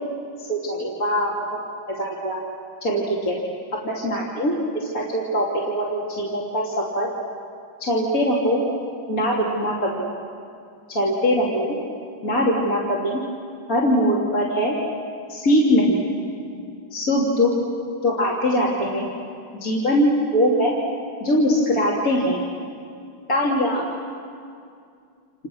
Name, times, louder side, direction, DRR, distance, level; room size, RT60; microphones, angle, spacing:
voice 1, 0.4-1.3 1.9-2.4 2.8-3.4 3.8-7.1 7.8-8.6 9.1-10.1 10.9-11.8 12.2-13.2 13.7-14.8 15.3-16.0 16.9-17.5 18.0-19.1 19.6-20.7 21.2-22.4 23.3-23.9, equal, 40° left, -5 dB, 3.4 m, -22 dB
30.0 x 28.5 x 6.3 m, 2.4 s
omnidirectional pair, 2.4 m